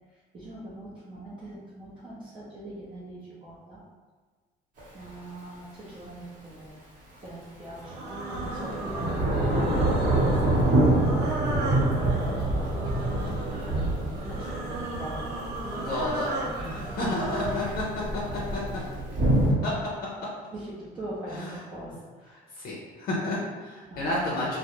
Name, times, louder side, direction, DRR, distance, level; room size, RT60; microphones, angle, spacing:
voice 1, 0.1-3.8 4.9-6.8 7.2-11.3 11.5-15.3 15.6-16.4 17.4-17.8 20.5-22.4 23.9-24.5, right 1 dB, 30° right, -9 dB, 0.6 m, -43 dB
Thunder / Rain, 4.8-4.9 7.8-19.5, right 1 dB, 50° right, 0.9 m, -27 dB
sound 1, 7.8-17.7, right 2 dB, 75° right, 0.6 m, -35 dB
voice 2, 15.8-16.3 16.6-17.9 18.5-18.6 19.6-19.8 20.2-20.3 21.3-21.5 22.5-24.6, left 2 dB, 65° left, -5 dB, 0.5 m, -31 dB
2.3 x 2.0 x 2.8 m, 1.4 s
cardioid pair, 110°, 17 cm